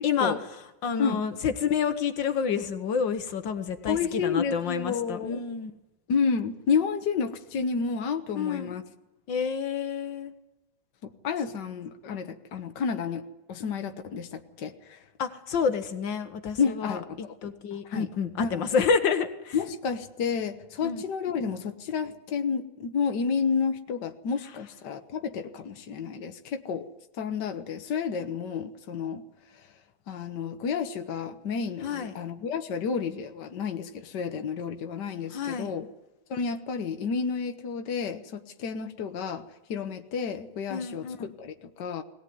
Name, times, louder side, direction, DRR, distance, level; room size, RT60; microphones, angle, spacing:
voice 1, 0.0-0.3 0.8-5.7 8.4-8.8 9.3-10.3 15.2-19.6 20.8-21.0 31.8-32.1 35.3-35.7 40.7-41.3, left 6 dB, 85° left, 9 dB, 2.0 m, -29 dB
voice 2, 3.9-5.4 6.1-8.8 11.0-15.0 16.6-18.1 18.4-18.7 19.5-26.9 27.2-29.2 29.5-29.7 30.1-35.9 36.3-42.0, left 6 dB, 70° left, 7 dB, 1.8 m, -31 dB
20.0 x 17.5 x 9.5 m, 0.95 s
omnidirectional pair, 2.0 m